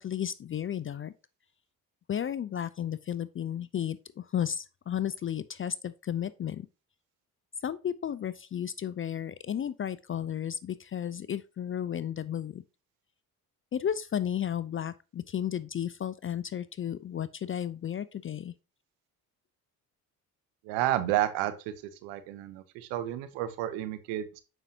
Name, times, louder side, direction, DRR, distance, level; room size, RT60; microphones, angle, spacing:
voice 1, 0.0-1.1 2.1-6.7 7.6-12.6 13.7-18.5, left 9 dB, 30° left, 0.4 m, -33 dB
voice 2, 20.6-21.7 22.0-24.4, right 13 dB, 80° right, 1.1 m, -31 dB
7.9 x 5.5 x 2.8 m
hypercardioid pair, 55°, 42 cm